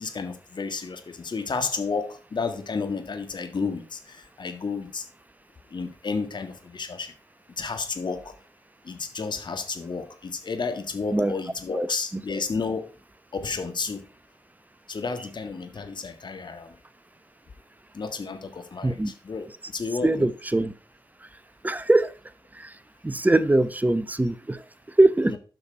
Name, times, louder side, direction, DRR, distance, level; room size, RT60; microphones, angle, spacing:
voice 1, 0.0-5.0 5.7-7.1 7.6-8.3 8.8-12.9 13.3-14.0 14.9-16.8 17.9-20.3 25.3-25.4, left 4 dB, 50° left, 8 dB, 1.6 m, -31 dB
voice 2, 20.0-20.7 21.2-21.3 21.6-22.1 22.5-25.3, right 2 dB, 15° right, 16 dB, 0.8 m, -22 dB
8.0 x 5.8 x 4.4 m, 0.36 s
hypercardioid pair, 40°, 10 cm